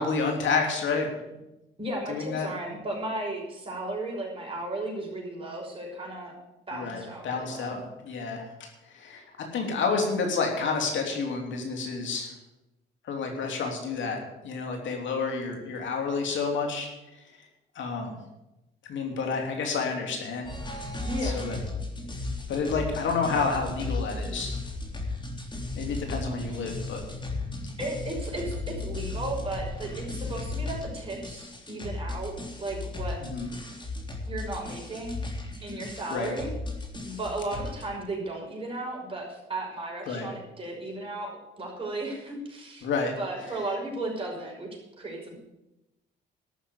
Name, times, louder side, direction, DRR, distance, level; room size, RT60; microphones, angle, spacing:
voice 1, 0.0-1.4 2.1-2.5 6.7-8.7 8.9-9.2 9.5-12.3 13.0-16.9 17.7-18.1 18.9-20.5 21.2-21.6 22.5-24.6 25.8-27.0 33.2-33.5 36.1-36.3 40.1-40.3 42.8-43.1, left 4 dB, 70° left, 2 dB, 3.1 m, -29 dB
voice 2, 1.8-6.3 6.7-7.8 21.0-21.4 27.8-33.2 34.3-35.2 35.6-36.5 37.0-41.3 41.6-42.9 43.2-44.7 45.0-45.4, right 2 dB, 25° right, -2 dB, 5.9 m, -35 dB
sound 1, 20.4-37.8, left 3 dB, 25° left, 3.4 m, -35 dB
12.5 x 6.7 x 9.7 m, 0.95 s
cardioid pair, 90°, 20 cm